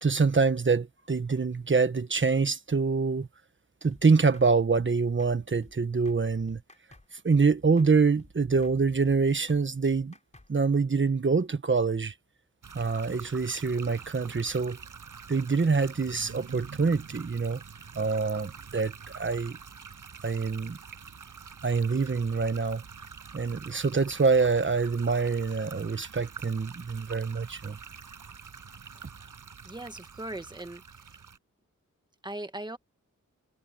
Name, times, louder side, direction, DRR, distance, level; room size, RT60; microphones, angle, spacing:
voice 1, 0.0-3.3 3.8-6.6 7.2-10.1 10.5-12.1 12.7-14.8 15.3-17.6 17.9-19.6 20.2-20.8 21.6-22.8 23.3-27.8, right 4 dB, 40° right, 1.3 m, -25 dB
sound 1, 3.9-4.0 4.3-4.5 4.8-4.9 5.2-5.3 5.6-5.8 6.0-6.2 6.5-7.1 7.3-7.5 7.8-7.9 8.2-8.3 8.6-8.8 9.0-9.2 9.5-9.6 9.9-10.5, left 2 dB, 20° left, 4.2 m, -53 dB
sound 2, 12.6-31.4, right 6 dB, 85° right, 6.1 m, -46 dB
voice 2, 29.6-31.2 32.2-32.8, right 1 dB, 15° right, 1.7 m, -39 dB
wide cardioid pair, 90°, 31 cm